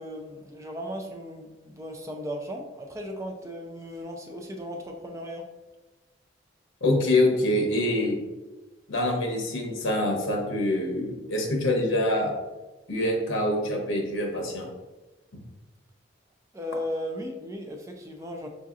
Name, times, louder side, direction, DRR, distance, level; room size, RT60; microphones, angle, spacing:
voice 1, 0.0-5.5 16.5-18.5, equal, 15° right, 2 dB, 0.3 m, -36 dB
voice 2, 6.8-8.2 8.9-12.3 12.9-14.7, left 1 dB, 85° left, 1 dB, 0.8 m, -25 dB
4.9 x 2.7 x 2.4 m, 1.1 s
head